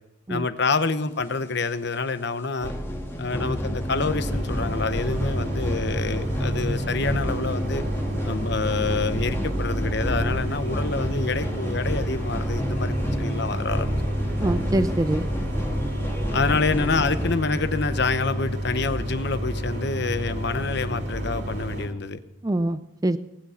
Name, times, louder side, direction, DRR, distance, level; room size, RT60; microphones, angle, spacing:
voice 1, 0.3-2.7 3.2-7.8 8.2-13.9 16.3-22.2, left 4 dB, 55° left, 11 dB, 0.9 m, -27 dB
sound 1, 2.6-17.3, equal, 10° left, 1.6 m, -29 dB
sound 2, 3.7-21.9, right 1 dB, 55° right, 2.7 m, -30 dB
voice 2, 14.4-15.3 22.4-23.2, right 1 dB, 15° right, 12 dB, 0.4 m, -24 dB
19.0 x 9.9 x 5.7 m, 0.94 s
head